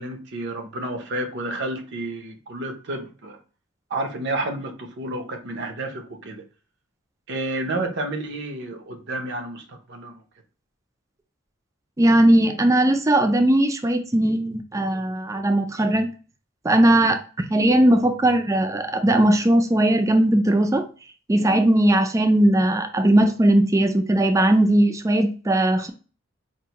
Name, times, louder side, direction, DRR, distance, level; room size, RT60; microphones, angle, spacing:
voice 1, 0.0-3.4 3.9-6.4 7.3-10.1, right 2 dB, 55° right, 5 dB, 0.7 m, -30 dB
voice 2, 12.0-16.1 16.6-20.8 21.3-25.9, right 1 dB, 15° right, 7 dB, 0.3 m, -19 dB
4.6 x 2.6 x 2.9 m, 0.36 s
head